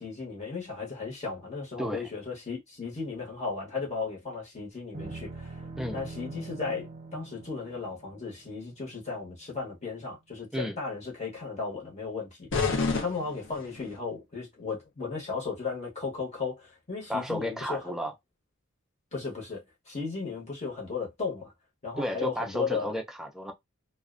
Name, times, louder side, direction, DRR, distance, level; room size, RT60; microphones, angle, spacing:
voice 1, 0.0-5.6 5.9-17.8 19.1-21.5 21.8-22.9, left 4 dB, 30° left, 0.9 m, -35 dB
voice 2, 1.8-2.1 5.8-6.0 10.5-10.8 17.1-18.1 22.0-23.5, equal, ahead, 0.4 m, -32 dB
sound 1, 4.9-9.4, right 3 dB, 35° right, 0.7 m, -43 dB
sound 2, 12.5-14.0, left 4 dB, 60° left, 0.6 m, -29 dB
2.4 x 2.1 x 2.4 m
head